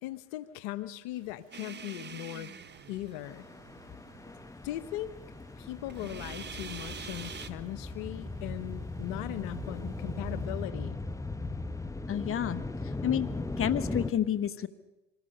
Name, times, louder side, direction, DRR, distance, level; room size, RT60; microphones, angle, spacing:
voice 1, 0.0-2.5 2.9-3.4 4.6-5.1 5.6-11.0, left 15 dB, 75° left, 14 dB, 1.1 m, -39 dB
sound 1, 1.2-10.7, right 8 dB, 65° right, 3.5 m, -55 dB
sound 2, 1.5-3.5 5.9-7.5, right 6 dB, 30° right, 1.5 m, -44 dB
sound 3, 3.2-14.1, left 2 dB, 10° left, 1.3 m, -38 dB
voice 2, 12.1-12.6 13.0-13.3 13.6-14.7, left 10 dB, 40° left, 13 dB, 1.4 m, -29 dB
26.0 x 20.5 x 6.7 m, 1.0 s
supercardioid pair, 85°, 34 cm